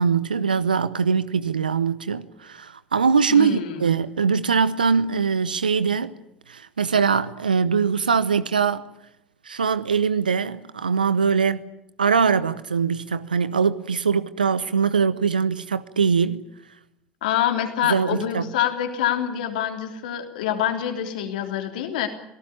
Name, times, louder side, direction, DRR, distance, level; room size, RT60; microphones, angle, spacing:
voice 1, 0.0-6.2 6.5-8.8 9.4-11.6 12.0-16.4 17.9-18.4, right 6 dB, 85° right, 0.8 m, -22 dB
voice 2, 3.3-3.8 17.2-22.1, left 10 dB, 70° left, 3.3 m, -26 dB
27.0 x 18.5 x 8.7 m
figure-of-eight pair, 65°, 5 cm